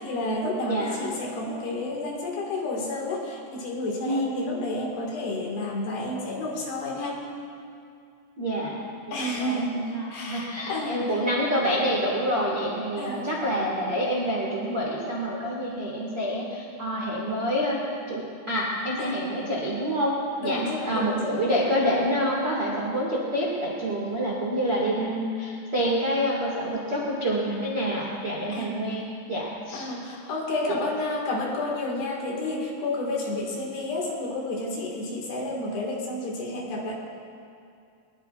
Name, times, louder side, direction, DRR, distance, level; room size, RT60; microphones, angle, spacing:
voice 1, 0.0-7.3 9.1-11.2 13.0-13.3 19.0-19.2 20.4-21.4 28.5-28.8 29.7-36.9, left 2 dB, 60° left, -1 dB, 3.7 m, -30 dB
voice 2, 0.7-1.0 4.0-4.6 8.4-8.8 9.1-9.6 9.9-17.8 18.1-20.1 20.4-29.8, equal, 60° right, -6 dB, 1.1 m, -27 dB
21.0 x 20.5 x 2.5 m, 2.4 s
omnidirectional pair, 5.7 m